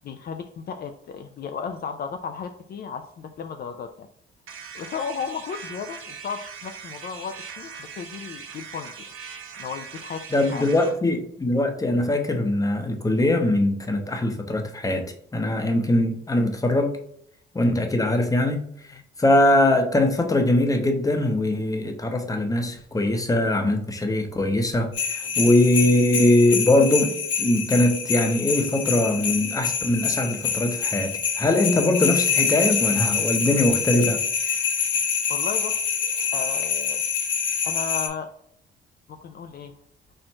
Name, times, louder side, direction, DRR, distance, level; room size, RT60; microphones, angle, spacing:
voice 1, 0.0-4.1 4.7-8.9 9.6-10.2 10.5-10.9 25.2-25.3 35.3-37.0 37.6-38.3 39.1-39.7, left 6 dB, 50° left, 6 dB, 0.5 m, -34 dB
sound 1, 4.5-11.0, right 6 dB, 85° right, 0.8 m, -40 dB
voice 2, 10.3-15.0 15.3-17.0 17.5-18.6 19.2-34.6, left 1 dB, 15° left, 5 dB, 0.8 m, -22 dB
sound 2, 24.9-38.1, left 6 dB, 70° left, 1.0 m, -26 dB
4.4 x 2.5 x 4.3 m, 0.68 s
cardioid pair, 90°, 20 cm